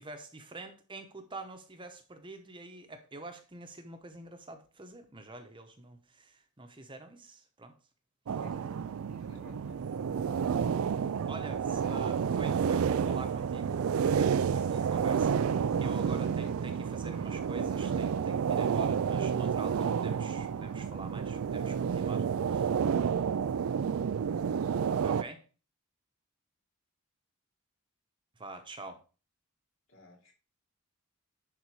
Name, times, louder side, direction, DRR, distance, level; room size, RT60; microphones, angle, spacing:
voice 1, 0.0-7.7 11.3-13.7 14.0-22.7 25.0-25.4 28.4-29.0, right 2 dB, 25° right, 0.9 m, -46 dB
sound 1, 8.3-25.2, right 7 dB, 75° right, 0.4 m, -30 dB
voice 2, 9.1-9.8 11.8-11.9 16.2-16.8 29.9-30.3, left 1 dB, 70° left, 2.9 m, -54 dB
11.0 x 4.0 x 4.7 m
head